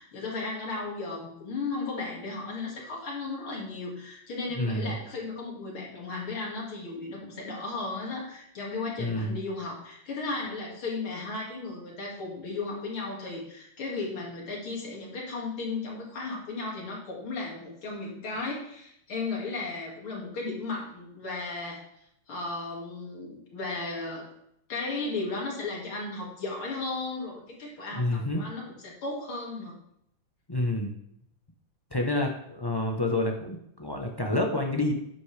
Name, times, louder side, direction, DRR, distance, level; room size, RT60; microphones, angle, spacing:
voice 1, 0.0-21.8 22.3-24.3 24.7-29.8, left 3 dB, 85° left, -2 dB, 3.3 m, -35 dB
voice 2, 4.6-5.0 9.0-9.4 27.9-28.4 30.5-30.9 31.9-34.9, left 1 dB, 30° left, 1 dB, 0.4 m, -28 dB
10.5 x 8.4 x 3.4 m, 0.74 s
omnidirectional pair, 2.3 m